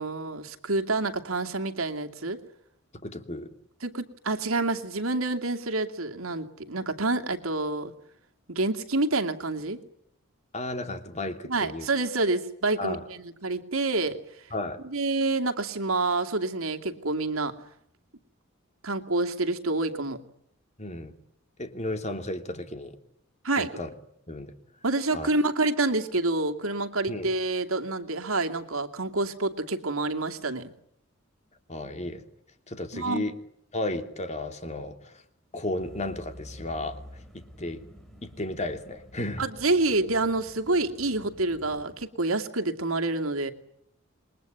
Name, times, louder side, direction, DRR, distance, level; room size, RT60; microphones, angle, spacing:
voice 1, 0.0-2.4 3.8-7.9 8.5-9.8 11.5-14.2 14.8-17.5 18.8-20.2 23.4-23.7 24.8-30.7 32.9-33.3 39.4-43.5, right 2 dB, 85° right, 5 dB, 2.6 m, -28 dB
voice 2, 3.0-3.5 10.5-11.9 12.8-13.0 14.5-14.8 20.8-21.1 21.6-23.0 23.6-23.9 24.3-24.5 25.1-25.3 27.1-27.3 31.7-32.2 32.7-33.3 33.7-35.2 35.5-37.0 37.3-37.9 38.2-39.4, left 1 dB, 35° left, 7 dB, 2.9 m, -33 dB
sound 1, 35.8-42.1, left 1 dB, ahead, 4.8 m, -49 dB
28.5 x 22.0 x 9.2 m, 0.75 s
head